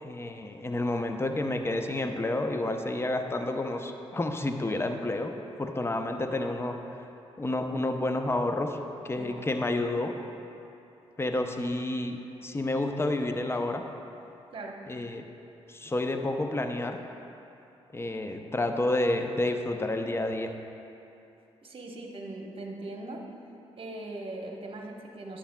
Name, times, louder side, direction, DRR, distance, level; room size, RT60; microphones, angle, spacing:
voice 1, 0.0-6.8 7.4-8.8 9.0-10.1 11.2-13.9 14.9-15.3 15.7-17.0 17.9-20.5, left 2 dB, 20° left, 5 dB, 0.6 m, -30 dB
voice 2, 14.5-14.8 21.6-23.2 23.8-25.4, right 2 dB, 45° right, 1 dB, 1.0 m, -40 dB
9.9 x 7.1 x 2.2 m, 2.8 s
supercardioid pair, 50°, 13 cm